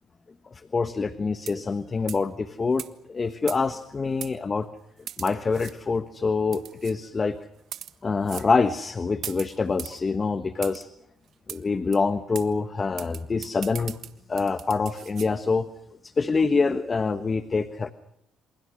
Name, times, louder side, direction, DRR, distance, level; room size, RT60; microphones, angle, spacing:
voice 1, 0.5-4.7 5.2-7.4 8.0-10.9 11.5-14.0 14.3-15.7 16.0-17.9, left 4 dB, 30° left, 11 dB, 1.2 m, -26 dB
sound 1, 1.4-1.7 2.1-2.3 2.8-2.9 3.5-3.8 4.2-4.3 5.1-5.7 6.5-6.9 7.6-7.9 8.3-8.5 9.2-10.0 10.6-10.8 11.5-11.6 11.9-12.0 12.3-12.5 13.0-15.3, right 9 dB, 65° right, 1.5 m, -39 dB
28.0 x 27.5 x 6.3 m, 0.74 s
cardioid pair, 85°, 0 cm